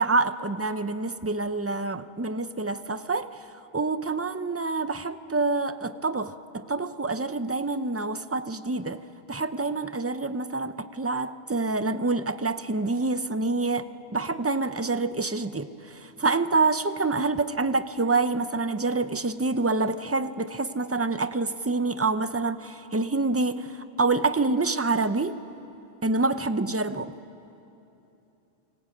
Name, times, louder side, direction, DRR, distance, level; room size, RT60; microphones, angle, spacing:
voice 1, 0.0-3.5 3.7-9.0 9.3-25.4 26.0-27.1, right 3 dB, 20° right, 11 dB, 0.5 m, -27 dB
28.5 x 22.0 x 8.5 m, 2.9 s
omnidirectional pair, 1.2 m